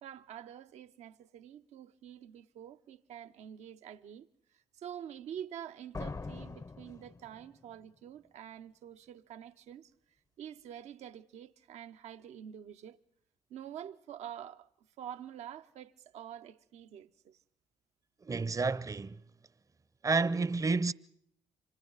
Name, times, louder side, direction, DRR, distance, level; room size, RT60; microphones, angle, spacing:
voice 1, 0.0-4.3 4.5-9.9 10.4-13.0 13.5-14.7 15.0-17.4, right 10 dB, 70° right, 0.8 m, -47 dB
sound 1, 5.9-7.8, left 3 dB, 30° left, 0.8 m, -43 dB
voice 2, 18.3-19.2 20.0-20.9, right 4 dB, 30° right, 0.7 m, -30 dB
28.0 x 26.0 x 4.0 m
hypercardioid pair, 45°, 12 cm